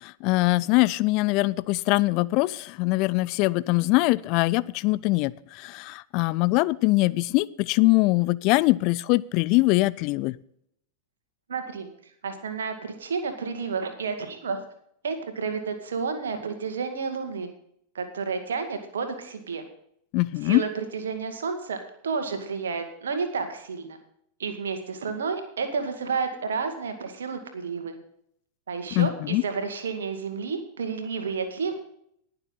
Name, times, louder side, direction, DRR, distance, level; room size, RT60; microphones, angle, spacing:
voice 1, 0.0-10.4 20.1-20.6 29.0-29.4, left 22 dB, 45° left, 20 dB, 0.4 m, -23 dB
voice 2, 11.5-11.9 12.2-14.6 15.0-17.5 17.9-19.6 20.4-21.8 22.0-24.0 24.4-28.0 28.7-31.7, right 5 dB, 65° right, 7 dB, 2.1 m, -31 dB
20.0 x 6.9 x 4.0 m, 0.70 s
figure-of-eight pair, 90°, 0 cm